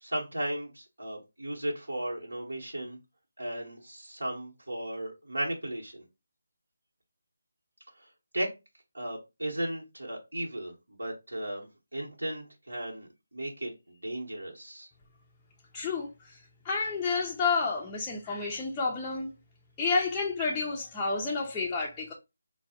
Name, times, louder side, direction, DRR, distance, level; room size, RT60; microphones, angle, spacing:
voice 1, 0.0-3.0 3.4-6.0 8.0-8.1 8.3-8.5 8.9-11.7 11.9-14.9, right 1 dB, 85° right, 0.9 m, -35 dB
voice 2, 15.7-16.4 16.6-19.3 19.8-22.1, left 4 dB, 15° left, 0.3 m, -30 dB
3.9 x 2.0 x 2.6 m
figure-of-eight pair, 160°, 0 cm